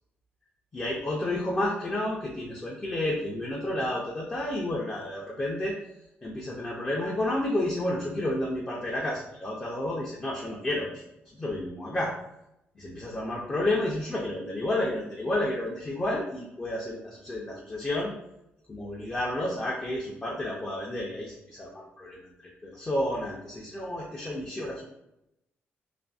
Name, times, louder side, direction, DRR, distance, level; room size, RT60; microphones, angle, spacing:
voice 1, 0.7-5.7 6.2-12.1 12.8-18.1 18.7-22.3 22.6-24.8, left 1 dB, 20° left, -3 dB, 0.4 m, -31 dB
2.5 x 2.5 x 2.3 m, 0.84 s
cardioid pair, 130°, 4 cm